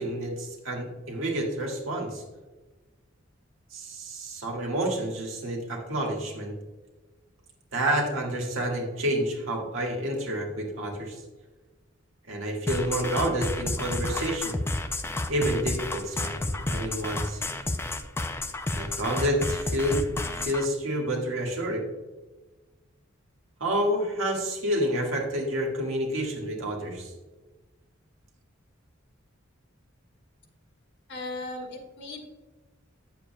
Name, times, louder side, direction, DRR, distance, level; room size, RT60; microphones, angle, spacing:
voice 1, 0.0-2.2 3.7-6.5 7.7-11.2 12.3-14.6 15.3-16.4 16.7-17.4 18.7-21.8 23.6-27.1, right 1 dB, 70° right, 0 dB, 1.7 m, -29 dB
sound 1, 12.7-20.7, left 2 dB, 10° left, 0.4 m, -31 dB
voice 2, 31.1-32.3, left 2 dB, 60° left, 3 dB, 1.3 m, -37 dB
8.8 x 7.1 x 2.2 m, 1.2 s
head